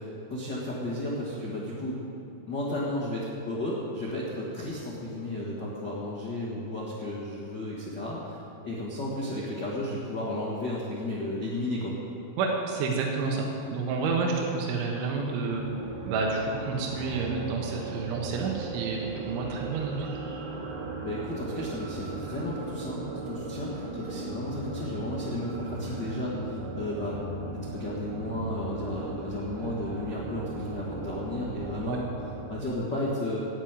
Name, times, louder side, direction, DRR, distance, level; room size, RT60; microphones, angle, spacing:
voice 1, 0.0-2.0 2.5-8.4 8.6-12.0 21.0-27.2 27.6-33.4, left 1 dB, 85° left, -6 dB, 0.9 m, -33 dB
voice 2, 12.4-15.6 16.1-20.2 31.8-32.0, right 4 dB, 80° right, -1 dB, 3.8 m, -29 dB
sound 1, 15.4-32.7, right 3 dB, 65° right, 4.1 m, -37 dB
12.5 x 9.5 x 9.1 m, 2.7 s
omnidirectional pair, 5.5 m